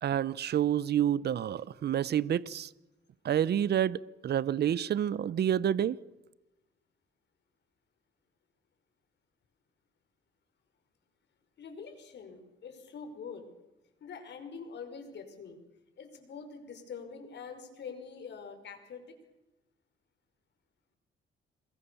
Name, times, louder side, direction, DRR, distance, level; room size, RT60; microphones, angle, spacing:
voice 1, 0.0-2.7 3.2-6.0, right 10 dB, 55° right, 0.8 m, -28 dB
voice 2, 11.6-13.5 14.0-15.6 16.0-19.2, left 5 dB, 60° left, 5.7 m, -45 dB
27.5 x 22.0 x 7.1 m
cardioid pair, 90°, 20 cm